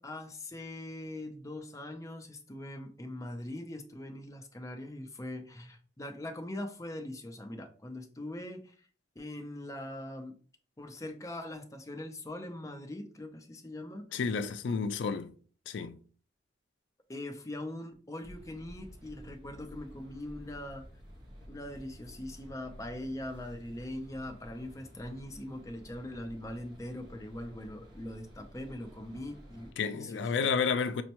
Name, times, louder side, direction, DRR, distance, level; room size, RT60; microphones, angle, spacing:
voice 1, 0.0-8.9 9.2-10.4 10.8-14.2 17.1-20.8 21.5-30.3, left 1 dB, 20° left, 0.5 m, -42 dB
voice 2, 14.1-15.3 15.7-16.0 29.8-31.0, left 5 dB, 80° left, 0.3 m, -31 dB
sound 1, 18.2-29.7, equal, 25° right, 1.2 m, -52 dB
5.3 x 2.1 x 2.9 m
head